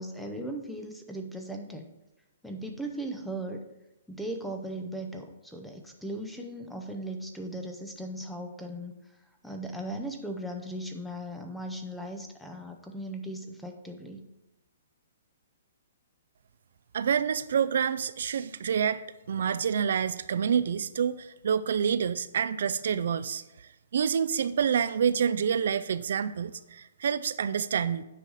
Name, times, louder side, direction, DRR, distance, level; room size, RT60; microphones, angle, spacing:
voice 1, 0.0-1.9 2.4-3.6 4.1-8.9 9.4-14.2, right 1 dB, ahead, 4 dB, 0.6 m, -38 dB
voice 2, 16.9-19.0 19.3-23.4 23.9-28.0, right 7 dB, 65° right, 13 dB, 0.4 m, -27 dB
9.1 x 5.4 x 4.8 m, 0.93 s
hypercardioid pair, 165°, 0 cm